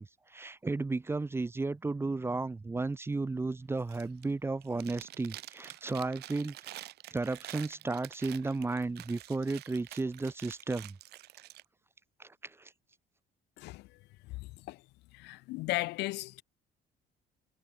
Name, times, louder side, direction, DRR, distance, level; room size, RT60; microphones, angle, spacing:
voice 1, 0.0-6.6 7.1-11.0 12.2-12.7, right 3 dB, 15° right, 0.5 m, -34 dB
Chewing mastication, 3.8-4.3 4.6-11.6, right 16 dB, 75° right, 1.3 m, -48 dB
voice 2, 13.6-14.0 14.2-14.8 15.1-16.4, left 21 dB, 90° left, 1.1 m, -36 dB
cardioid pair, 110°, 17 cm